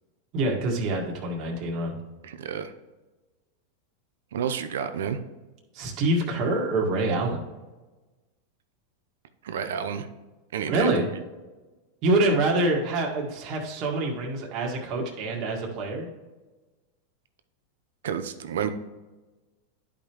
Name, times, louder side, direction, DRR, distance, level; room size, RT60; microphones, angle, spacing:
voice 1, 0.3-1.9 5.7-7.4 10.7-11.1 12.0-16.1, right 2 dB, 45° right, -1 dB, 1.8 m, -26 dB
voice 2, 2.2-2.7 4.3-5.2 9.4-10.1 10.5-11.2 18.0-18.7, right 8 dB, 85° right, 9 dB, 0.7 m, -30 dB
11.0 x 5.1 x 3.0 m, 1.2 s
supercardioid pair, 125°, 0 cm